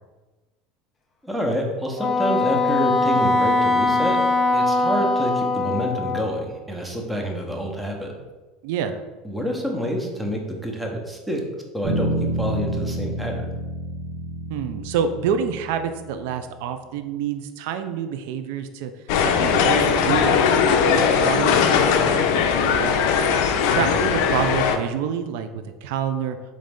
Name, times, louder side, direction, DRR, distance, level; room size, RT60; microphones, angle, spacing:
voice 1, 1.2-4.2 4.5-8.1 9.2-12.1 12.4-13.4 23.8-23.9, equal, 5° right, 1 dB, 0.8 m, -27 dB
Wind instrument woodwind instrument, 2.0-6.5, left 2 dB, 30° left, 0.6 m, -21 dB
voice 2, 8.6-9.0 14.5-18.9 19.2-22.9 23.7-26.4, right 7 dB, 75° right, 9 dB, 0.3 m, -27 dB
Bass guitar, 11.8-16.3, right 1 dB, 45° right, 1.5 m, -29 dB
sound 1, 19.1-24.8, left 6 dB, 70° left, 0.4 m, -19 dB
3.8 x 3.1 x 3.5 m, 1.2 s
supercardioid pair, 100°, 0 cm